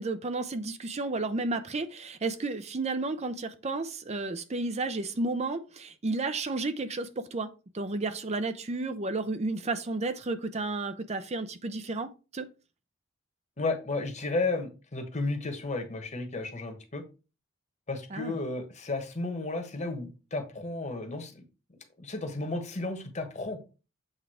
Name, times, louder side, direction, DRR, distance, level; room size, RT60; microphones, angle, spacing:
voice 1, 0.0-12.5 18.1-18.4, right 3 dB, 35° right, 0.6 m, -32 dB
voice 2, 13.6-17.0 17.9-21.4 22.0-23.6, left 2 dB, 35° left, 1.3 m, -33 dB
8.0 x 3.6 x 4.9 m
head